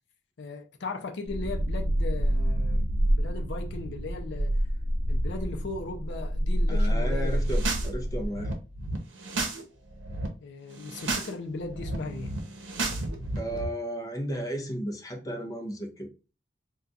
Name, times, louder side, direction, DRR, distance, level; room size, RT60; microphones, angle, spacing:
voice 1, 0.4-4.5 5.1-7.4 10.4-12.3, left 3 dB, 65° left, 0.5 m, -37 dB
sound 1, 1.3-8.3, equal, 55° right, 0.4 m, -27 dB
voice 2, 6.7-8.5 13.4-16.1, right 1 dB, 20° left, 0.6 m, -34 dB
sound 2, 7.3-7.9 8.2-9.6 9.9-10.3 10.7-11.3 11.6-13.7, right 2 dB, 80° right, 0.7 m, -33 dB
2.3 x 2.3 x 3.9 m
head